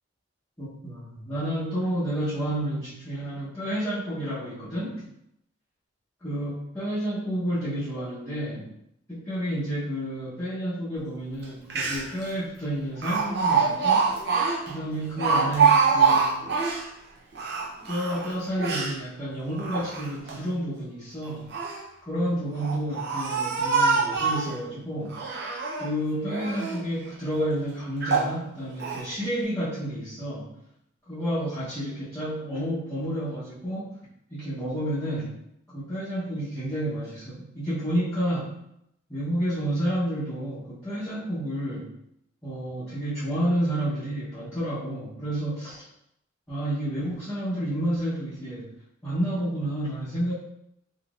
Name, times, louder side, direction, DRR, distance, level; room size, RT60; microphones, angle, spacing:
voice 1, 0.6-5.1 6.2-8.7 9.1-14.1 14.7-16.4 17.9-21.5 22.1-25.2 25.8-30.5 31.1-33.9 34.3-35.3 35.7-38.5 39.1-41.9 42.4-45.8 46.5-48.7 49.0-50.3, right 1 dB, 15° left, -13 dB, 0.8 m, -30 dB
Speech, 11.4-11.5 11.7-12.2 13.0-16.9 17.3-19.0 19.5-20.3 21.2-21.8 22.5-24.5 25.1-25.9 26.3-26.8 27.4-27.5 28.0-28.3 28.8-29.0, right 5 dB, 55° right, 0.6 m, -25 dB
3.7 x 2.8 x 2.4 m, 0.79 s
head